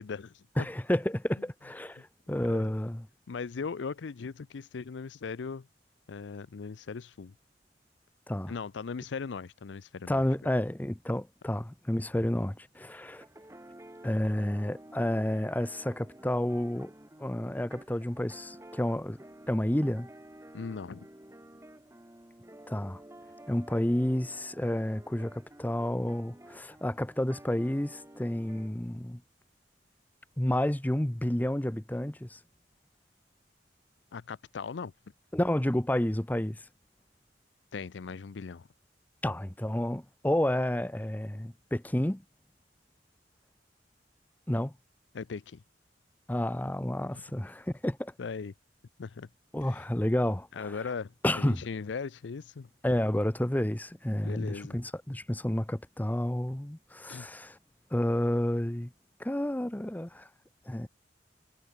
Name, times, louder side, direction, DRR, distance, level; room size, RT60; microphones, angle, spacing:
voice 1, 0.0-0.7 2.4-2.7 3.3-5.7 6.1-7.3 8.5-10.2 20.5-21.1 34.1-34.9 37.7-38.7 45.1-45.6 47.1-47.2 48.2-48.5 49.0-49.3 49.7-49.8 50.5-52.7 54.2-54.8 57.1-57.3, left 5 dB, 90° left, 0.5 m, -38 dB
voice 2, 0.6-3.1 8.3-8.5 10.1-13.2 14.0-16.9 17.2-19.2 19.5-20.1 22.7-23.0 23.5-29.2 30.4-32.4 35.3-36.7 39.2-42.2 44.5-44.7 46.3-48.1 49.5-50.8 51.2-51.6 52.8-57.6 57.9-58.9 59.2-60.3 60.7-60.9, left 1 dB, 10° left, 0.7 m, -30 dB
sound 1, 13.0-28.7, right 1 dB, 15° right, 1.5 m, -51 dB
head